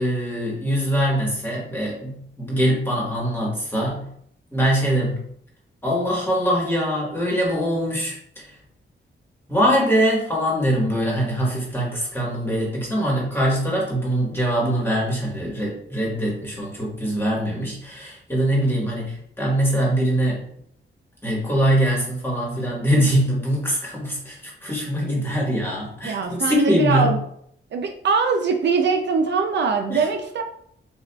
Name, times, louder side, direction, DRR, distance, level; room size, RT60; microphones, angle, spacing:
voice 1, 0.0-4.1 4.5-5.3 5.8-8.5 9.5-20.4 21.2-27.1 29.9-30.0, equal, 10° left, -4 dB, 1.2 m, -23 dB
voice 2, 26.0-27.2 27.7-30.4, right 4 dB, 60° right, 4 dB, 0.4 m, -22 dB
6.8 x 2.4 x 2.3 m, 0.68 s
wide cardioid pair, 165°, 21 cm